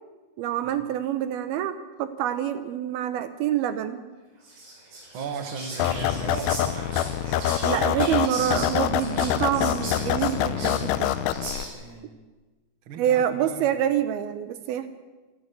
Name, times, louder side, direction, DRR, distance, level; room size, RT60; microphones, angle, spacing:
voice 1, 0.4-4.0 7.6-11.2 12.9-14.9, right 10 dB, 75° right, 11 dB, 2.7 m, -26 dB
Whispering, 4.4-11.9, right 2 dB, 60° right, 7.1 m, -38 dB
voice 2, 5.1-6.9 11.7-12.2 12.9-13.7, right 4 dB, 45° right, 7 dB, 1.8 m, -36 dB
sound 1, 5.8-11.6, left 12 dB, 85° left, 2.9 m, -25 dB
26.5 x 12.0 x 8.3 m, 1.2 s
omnidirectional pair, 4.6 m